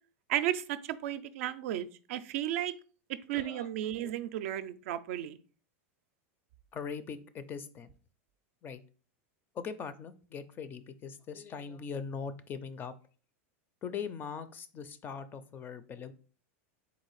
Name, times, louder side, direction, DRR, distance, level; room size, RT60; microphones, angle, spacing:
voice 1, 0.3-2.7 3.3-5.4, right 12 dB, 70° right, 0.4 m, -34 dB
voice 2, 3.3-4.2 6.7-7.9 8.6-8.8 9.5-12.9 13.8-16.1, left 6 dB, 25° left, 0.4 m, -41 dB
4.0 x 2.5 x 4.7 m
supercardioid pair, 130°, 8 cm